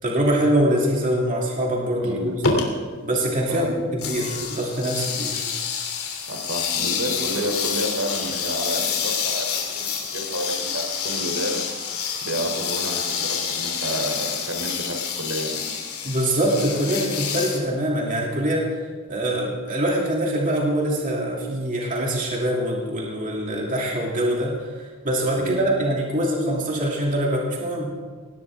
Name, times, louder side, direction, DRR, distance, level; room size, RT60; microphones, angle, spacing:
voice 1, 0.0-2.4 3.0-5.5 16.0-18.7 19.1-28.0, right 1 dB, 40° right, -2 dB, 2.8 m, -24 dB
voice 2, 2.0-2.3 3.5-3.7 6.3-11.6 12.2-15.7 25.4-25.7, right 1 dB, 75° right, 3 dB, 3.2 m, -30 dB
sound 1, 2.4-2.6 4.0-17.6, left 6 dB, 80° left, 3.1 m, -28 dB
19.0 x 16.5 x 3.6 m, 1.5 s
head